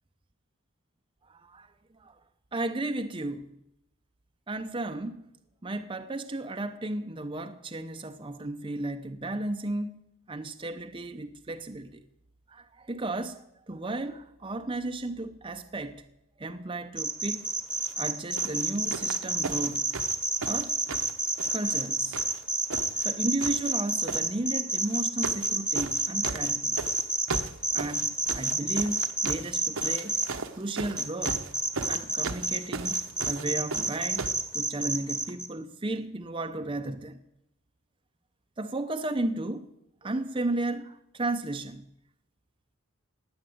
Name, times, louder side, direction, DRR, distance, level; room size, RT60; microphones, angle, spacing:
voice 1, 1.3-1.7 2.0-2.1 2.5-3.5 4.5-5.3 5.6-12.0 12.5-16.0 16.4-17.5 18.0-19.8 20.4-20.8 21.5-22.2 22.9-26.8 27.7-30.2 30.5-31.5 31.9-34.2 34.5-37.2 38.6-39.7 40.0-41.9, right 2 dB, 25° right, 0.6 m, -34 dB
sound 1, 17.0-30.3 31.0-32.6 32.8-35.5, right 2 dB, 5° right, 1.1 m, -28 dB
sound 2, 17.7-18.0 18.4-21.9 22.1-23.1 23.4-24.2 24.9-25.5 25.7-34.4 35.3-35.4, right 4 dB, 65° right, 1.0 m, -37 dB
17.5 x 9.6 x 7.9 m
head